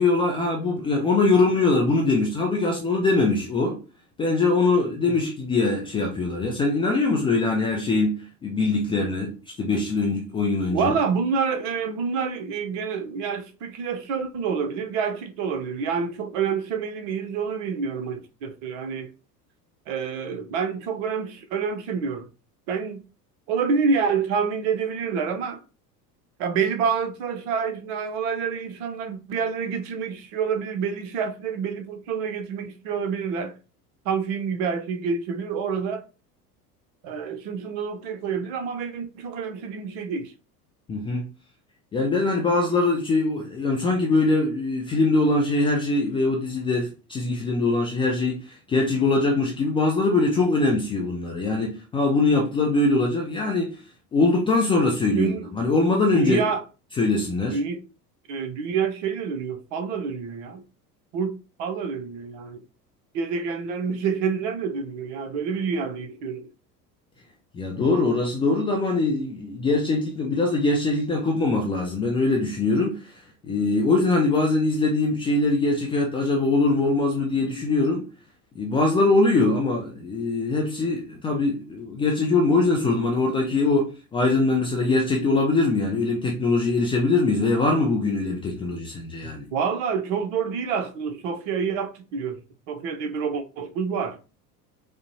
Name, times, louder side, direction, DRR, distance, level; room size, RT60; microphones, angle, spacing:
voice 1, 0.0-3.8 4.2-10.9 40.9-41.3 41.9-53.8 54.1-56.4 57.0-57.6 67.5-73.1 73.4-78.1 78.6-89.5, left 3 dB, 10° left, 0.3 m, -22 dB
voice 2, 10.7-19.1 19.9-22.3 22.7-23.0 23.5-25.6 26.4-33.6 34.0-36.0 37.0-40.3 55.1-55.5 56.1-56.6 57.4-57.8 58.3-60.6 61.1-62.6 63.1-66.5 89.2-94.2, right 6 dB, 45° right, 0.7 m, -28 dB
5.1 x 2.1 x 2.6 m
figure-of-eight pair, 75°, 49 cm